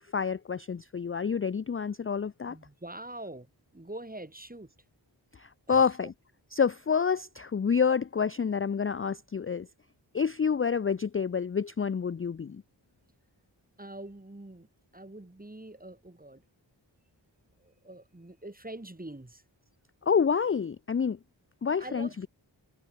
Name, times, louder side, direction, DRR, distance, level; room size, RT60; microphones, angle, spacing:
voice 1, 0.0-2.6 5.3-6.1 6.5-9.7 10.1-12.6 20.0-21.2 21.6-22.3, left 6 dB, 30° left, 0.4 m, -28 dB
voice 2, 2.5-3.5 3.7-4.7 5.7-6.1 13.8-14.7 14.9-16.4 17.6-19.4 21.8-22.1, right 1 dB, 20° right, 2.0 m, -44 dB
wide cardioid pair, 50°, 45 cm